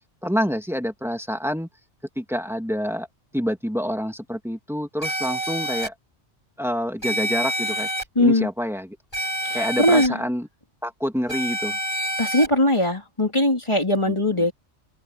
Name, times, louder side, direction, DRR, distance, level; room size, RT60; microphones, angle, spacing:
voice 1, 0.2-1.7 2.2-3.1 3.3-5.9 6.6-7.9 8.2-9.0 9.5-10.5 10.8-11.8 14.1-14.5, equal, ahead, 2.4 m, -27 dB
sound 1, 5.0-5.9 7.0-8.0 9.1-10.1 11.3-12.5, right 1 dB, 45° left, 8.0 m, -27 dB
voice 2, 8.1-8.5 9.8-10.1 12.2-14.5, left 1 dB, 25° left, 3.4 m, -20 dB
omnidirectional pair, 1.2 m